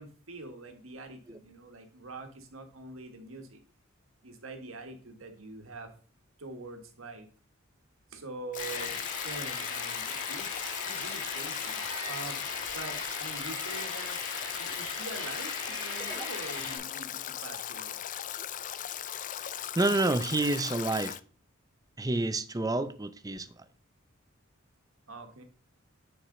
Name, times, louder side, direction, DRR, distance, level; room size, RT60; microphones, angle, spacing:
voice 1, 0.0-3.6 4.2-5.9 6.4-7.3 8.1-8.9 9.2-12.4 12.7-14.2 14.5-18.0 25.1-25.4, right 3 dB, 80° right, 1.5 m, -44 dB
Stream / Drip / Trickle dribble, 8.5-21.2, left 11 dB, 40° left, 0.4 m, -38 dB
sound 1, 8.6-16.8, left 3 dB, 75° left, 3.8 m, -38 dB
voice 2, 19.7-21.2 22.0-23.6, right 2 dB, 20° right, 0.5 m, -29 dB
9.7 x 4.7 x 3.8 m
head